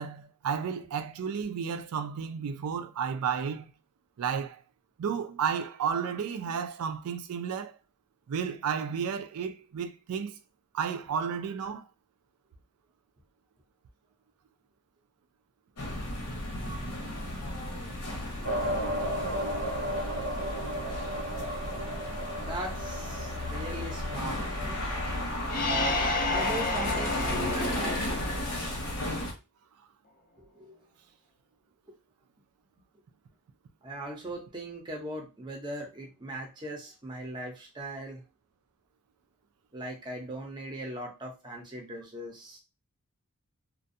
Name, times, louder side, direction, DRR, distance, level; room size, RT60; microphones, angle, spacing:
voice 1, 0.0-3.7 4.2-4.6 5.0-7.8 8.3-10.4 10.7-11.8, right 7 dB, 90° right, 0.4 m, -32 dB
sound 1, 15.8-29.3, left 1 dB, 90° left, 0.8 m, -34 dB
sound 2, 18.4-25.2, equal, 60° right, 0.7 m, -35 dB
voice 2, 22.3-24.8 26.3-28.0 30.5-30.8 33.8-38.2 39.7-42.6, right 1 dB, 20° right, 0.6 m, -39 dB
sound 3, 25.5-29.1, left 2 dB, 40° left, 0.4 m, -31 dB
2.5 x 2.2 x 2.6 m
head